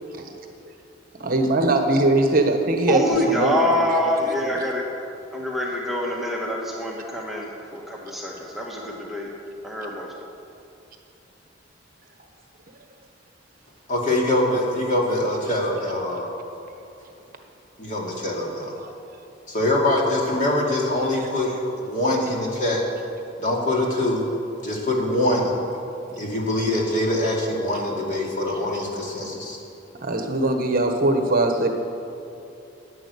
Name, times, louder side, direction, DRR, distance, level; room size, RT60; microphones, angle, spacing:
voice 1, 1.2-3.9 4.2-4.6 18.8-18.9 26.1-26.2 30.0-31.7, right 2 dB, 50° right, 4 dB, 1.2 m, -21 dB
voice 2, 2.9-4.8 5.3-9.3 9.6-10.1, equal, ahead, -3 dB, 1.3 m, -25 dB
voice 3, 13.9-16.3 17.8-18.7 19.5-22.8 23.4-24.2 24.6-25.5 26.2-29.6, left 1 dB, 40° left, -2 dB, 2.6 m, -23 dB
11.0 x 9.8 x 8.4 m, 2.7 s
head